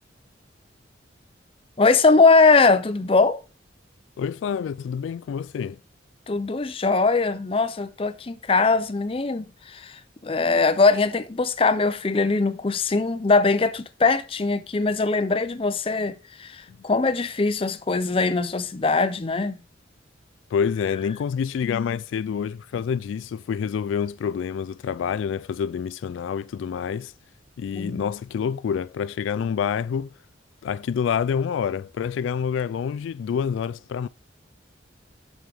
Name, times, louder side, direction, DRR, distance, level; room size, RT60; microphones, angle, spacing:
voice 1, 1.8-3.4 6.3-19.6 27.7-28.1, left 3 dB, 30° left, 0.5 m, -21 dB
voice 2, 4.2-5.8 16.7-16.8 20.5-27.1 27.6-30.1 30.6-34.1, left 7 dB, 90° left, 0.3 m, -27 dB
7.5 x 6.2 x 3.4 m
head